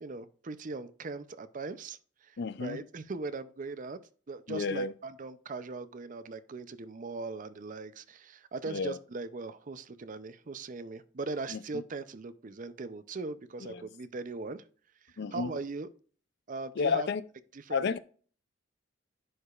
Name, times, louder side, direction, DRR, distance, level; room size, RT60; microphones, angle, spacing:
voice 1, 0.0-4.0 4.3-14.6 15.1-15.9 16.5-17.1 17.5-17.9, right 3 dB, 40° right, 0.5 m, -40 dB
voice 2, 2.4-2.8 4.5-4.9 8.7-9.0 11.5-11.8 13.7-13.9 15.2-15.5 16.8-17.2 17.7-18.0, left 5 dB, 55° left, 0.4 m, -31 dB
11.0 x 4.9 x 2.4 m
head